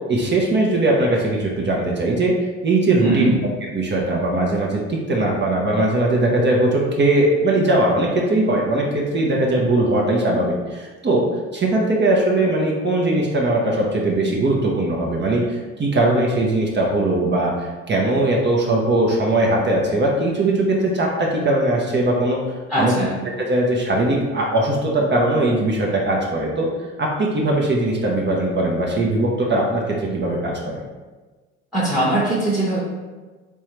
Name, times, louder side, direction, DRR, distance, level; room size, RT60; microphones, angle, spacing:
voice 1, 0.1-2.3 2.6-3.3 3.6-11.2 11.5-22.4 22.8-22.9 23.4-30.8, right 2 dB, 30° right, -2 dB, 0.8 m, -20 dB
voice 2, 3.0-3.3 22.7-23.2 31.7-32.8, right 1 dB, ahead, -5 dB, 1.0 m, -21 dB
3.5 x 3.3 x 3.1 m, 1.3 s
hypercardioid pair, 70°, 34 cm